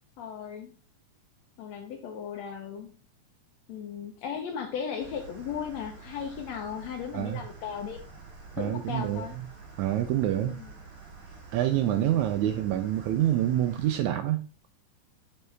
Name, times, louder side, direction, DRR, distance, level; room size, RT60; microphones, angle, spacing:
voice 1, 0.2-0.7 1.6-2.9 3.7-8.0 8.5-9.4 10.4-10.7 11.7-12.2, left 7 dB, 75° left, 1.7 m, -36 dB
sound 1, 5.0-13.9, right 4 dB, 55° right, 3.1 m, -48 dB
voice 2, 8.6-9.2 9.8-10.6 11.5-14.4, right 12 dB, 80° right, 1.8 m, -26 dB
6.8 x 5.5 x 3.2 m
omnidirectional pair, 3.7 m